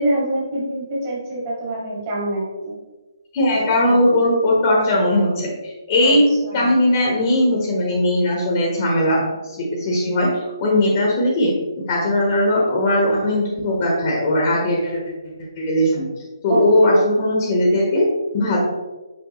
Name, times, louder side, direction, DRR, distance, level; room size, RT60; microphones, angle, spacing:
voice 1, 0.0-2.7 6.0-6.1 6.5-6.6 16.5-17.0, right 1 dB, 30° right, -5 dB, 2.0 m, -25 dB
voice 2, 3.3-6.3 6.5-11.6 11.9-15.0 15.6-16.1 16.4-18.1 18.3-18.6, left 1 dB, 30° left, -3 dB, 1.3 m, -18 dB
6.4 x 5.3 x 3.1 m, 1.2 s
figure-of-eight pair, 135°, 2 cm